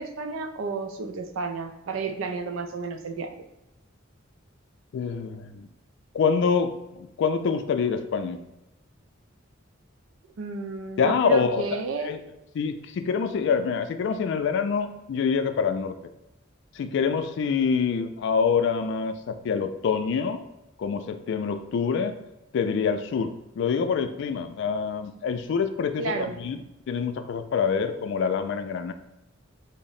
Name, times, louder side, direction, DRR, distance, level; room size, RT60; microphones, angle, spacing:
voice 1, 0.0-3.3 10.4-12.1 26.0-26.4, right 3 dB, 85° right, 7 dB, 0.4 m, -31 dB
voice 2, 4.9-5.7 6.1-8.4 11.0-11.6 12.0-12.2 12.5-15.9 16.7-20.4 20.8-22.2 22.5-26.6 26.9-28.9, left 6 dB, 65° left, 9 dB, 0.3 m, -26 dB
3.6 x 2.0 x 4.0 m, 0.92 s
head